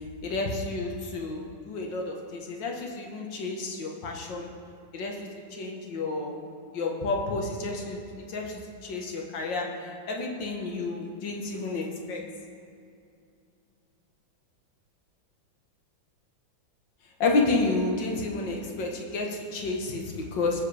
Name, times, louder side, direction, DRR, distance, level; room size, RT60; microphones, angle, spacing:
voice 1, 0.2-4.5 4.9-6.4 6.7-8.0 8.3-12.3 17.2-20.7, left 3 dB, 65° left, 1 dB, 2.0 m, -30 dB
20.5 x 7.5 x 3.4 m, 2.5 s
omnidirectional pair, 2.2 m